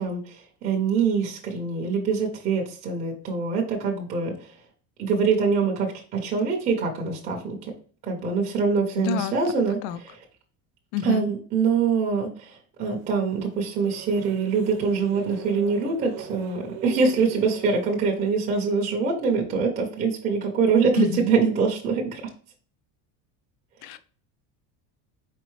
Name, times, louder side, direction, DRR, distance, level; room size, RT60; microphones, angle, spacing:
voice 1, 0.0-4.6 5.0-7.7 8.0-10.2 11.0-22.2, right 5 dB, 20° right, -1 dB, 0.4 m, -24 dB
voice 2, 9.0-9.3 9.8-10.0 10.9-11.3 21.0-21.3 23.8-24.0, left 12 dB, 85° left, 13 dB, 0.5 m, -27 dB
sound 1, 12.9-18.3, right 9 dB, 70° right, 0.8 m, -41 dB
4.4 x 4.0 x 3.1 m, 0.42 s
cardioid pair, 180°, 47 cm